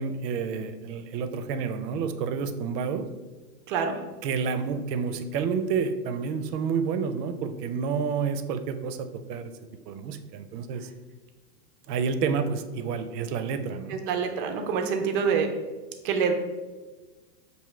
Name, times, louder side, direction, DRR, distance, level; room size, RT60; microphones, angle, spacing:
voice 1, 0.0-3.1 4.2-9.5 9.9-10.9 11.9-14.0, right 6 dB, 80° right, 9 dB, 0.6 m, -29 dB
voice 2, 3.7-4.0 13.9-15.5 16.0-16.3, right 6 dB, 35° right, 4 dB, 0.4 m, -26 dB
6.0 x 2.7 x 3.2 m, 1.3 s
supercardioid pair, 150°, 48 cm